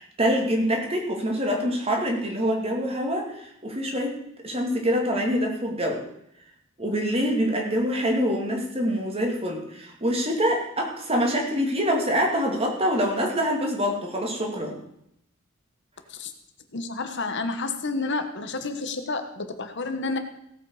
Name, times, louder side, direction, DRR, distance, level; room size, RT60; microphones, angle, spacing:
voice 1, 0.0-6.1 6.8-14.8, equal, 30° right, 1 dB, 2.7 m, -25 dB
voice 2, 16.7-20.2, left 3 dB, 55° left, 7 dB, 1.3 m, -30 dB
17.0 x 8.0 x 4.9 m, 0.77 s
head